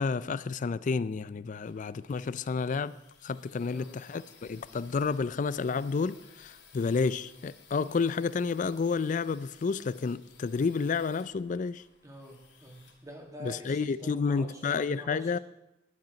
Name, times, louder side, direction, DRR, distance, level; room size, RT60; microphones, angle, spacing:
voice 1, 0.0-3.0 3.2-11.8 13.4-15.4, left 5 dB, 45° left, 0.4 m, -30 dB
sound 1, 1.5-13.9, left 5 dB, 65° left, 2.4 m, -58 dB
voice 2, 3.6-4.0 12.0-15.4, equal, 20° right, 2.1 m, -47 dB
10.5 x 10.0 x 5.2 m
head